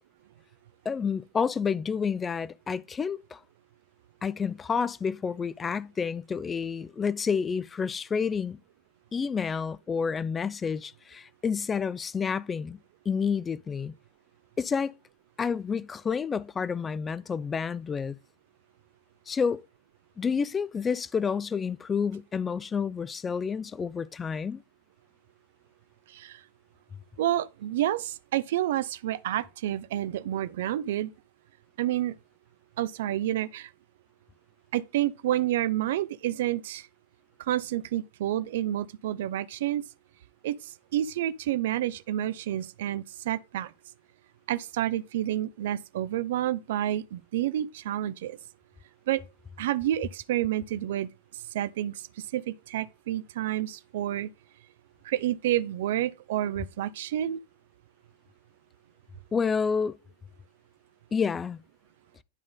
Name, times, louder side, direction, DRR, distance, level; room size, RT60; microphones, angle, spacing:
voice 1, 0.9-3.4 4.2-8.6 9.1-12.8 13.1-13.9 14.6-14.9 15.4-18.2 19.3-19.6 20.2-24.6 59.3-60.0 61.1-61.6, left 6 dB, 20° left, 0.3 m, -29 dB
voice 2, 26.1-26.4 27.2-31.1 31.8-32.1 32.8-33.7 34.7-36.9 37.5-39.8 40.4-43.7 44.5-48.4 49.1-49.2 49.6-51.1 51.5-52.1 52.3-54.3 55.0-57.4, right 13 dB, 55° right, 0.4 m, -29 dB
9.8 x 3.7 x 3.8 m
figure-of-eight pair, 90°, 0 cm